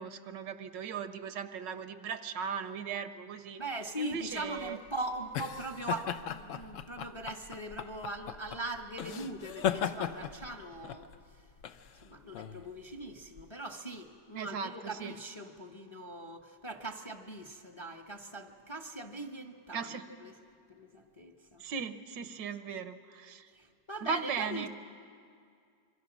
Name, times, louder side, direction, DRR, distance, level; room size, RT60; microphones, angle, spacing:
voice 1, 0.0-3.6 4.0-4.8 14.3-15.1 19.7-20.0 21.6-23.5 24.0-24.7, right 6 dB, 75° right, 10 dB, 1.5 m, -38 dB
voice 2, 3.6-11.1 11.4-11.5 12.0-20.3 20.7-21.6 23.5-24.7, right 2 dB, 20° left, 4 dB, 0.9 m, -41 dB
sound 1, 4.3-13.5, left 9 dB, 60° left, 0.8 m, -38 dB
26.0 x 23.5 x 6.1 m, 2.2 s
omnidirectional pair, 2.0 m